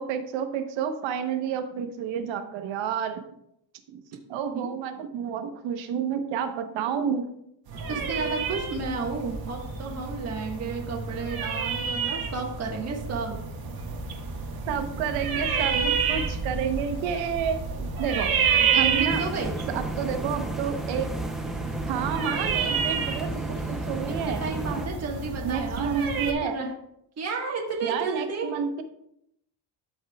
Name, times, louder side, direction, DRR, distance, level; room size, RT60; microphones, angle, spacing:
voice 1, 0.0-3.2 3.9-4.0 4.3-7.2 14.7-18.3 18.8-19.2 19.7-21.1 21.9-24.4 25.4-26.6 27.8-28.8, right 7 dB, 80° right, 7 dB, 1.1 m, -30 dB
sound 1, 7.7-26.3, right 6 dB, 50° right, 1.5 m, -30 dB
voice 2, 7.9-13.4 18.6-18.9 19.2-19.5 24.3-26.7 27.2-28.5, right 4 dB, 35° right, -1 dB, 1.5 m, -32 dB
sound 2, 19.1-24.9, right 2 dB, ahead, 0.5 m, -34 dB
13.0 x 5.5 x 2.3 m, 0.77 s
cardioid pair, 120°, 45 cm